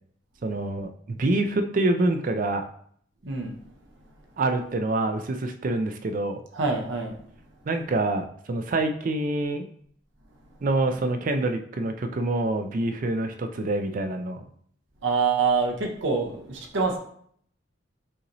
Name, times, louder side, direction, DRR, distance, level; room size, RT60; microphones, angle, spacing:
voice 1, 0.4-0.9 1.2-2.6 4.4-6.4 7.7-9.7 10.6-14.4, right 2 dB, 45° right, 7 dB, 0.4 m, -26 dB
voice 2, 6.5-7.1 15.0-17.0, right 4 dB, 75° right, 2 dB, 0.8 m, -25 dB
5.6 x 2.9 x 2.6 m, 0.62 s
head